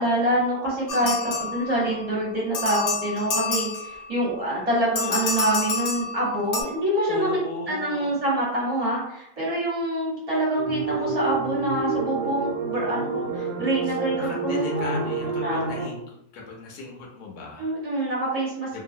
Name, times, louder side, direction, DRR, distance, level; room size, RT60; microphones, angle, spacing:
voice 1, 0.0-15.0 15.4-15.9 17.6-18.8, right 1 dB, 30° right, -5 dB, 0.9 m, -26 dB
sound 1, 0.9-2.0 2.5-4.2 5.0-6.6, left 3 dB, 60° left, 0.7 m, -28 dB
voice 2, 1.0-1.5 7.1-8.1 13.9-17.7 18.7-18.8, left 3 dB, 75° left, -1 dB, 1.1 m, -37 dB
sound 2, 10.6-15.9, right 4 dB, 90° right, 1.2 m, -28 dB
2.7 x 2.3 x 2.6 m, 0.76 s
omnidirectional pair, 1.7 m